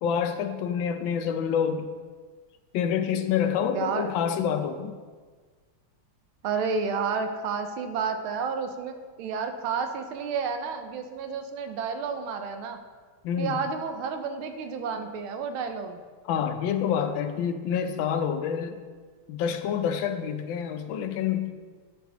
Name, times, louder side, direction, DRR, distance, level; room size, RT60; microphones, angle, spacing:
voice 1, 0.0-1.9 2.7-5.0 13.2-13.6 16.3-18.8 19.3-21.5, left 8 dB, 75° left, 8 dB, 1.3 m, -27 dB
voice 2, 3.7-4.1 6.4-12.8 13.4-16.0, right 5 dB, 90° right, 7 dB, 1.5 m, -31 dB
10.0 x 6.1 x 3.8 m, 1.5 s
omnidirectional pair, 2.3 m